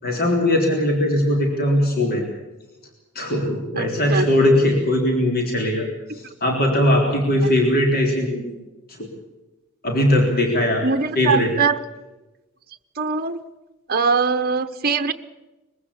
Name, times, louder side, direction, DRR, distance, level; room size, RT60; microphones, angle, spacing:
voice 1, 0.0-2.2 3.2-5.9 6.1-8.4 8.9-9.1 9.8-10.9 11.2-11.5, left 1 dB, 45° left, 1 dB, 3.7 m, -20 dB
voice 2, 3.8-4.3 6.2-6.3 7.4-7.5 10.8-11.8 13.0-13.4 13.9-15.1, right 5 dB, 45° right, 10 dB, 0.9 m, -22 dB
22.5 x 16.0 x 8.3 m, 1.1 s
head